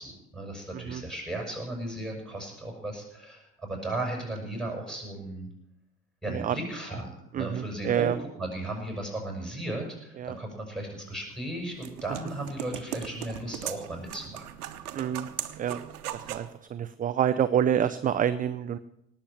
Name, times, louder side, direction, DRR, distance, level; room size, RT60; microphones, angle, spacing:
voice 1, 0.0-5.5 6.2-7.1 7.4-14.5, right 1 dB, ahead, 1 dB, 7.0 m, -35 dB
voice 2, 7.3-8.2 10.2-10.4 15.0-15.3 15.6-15.8 16.1-18.8, right 9 dB, 20° right, 13 dB, 0.4 m, -27 dB
sound 1, 11.3-16.5, right 11 dB, 70° right, 1.0 m, -39 dB
18.5 x 7.2 x 7.7 m, 0.81 s
figure-of-eight pair, 65°, 46 cm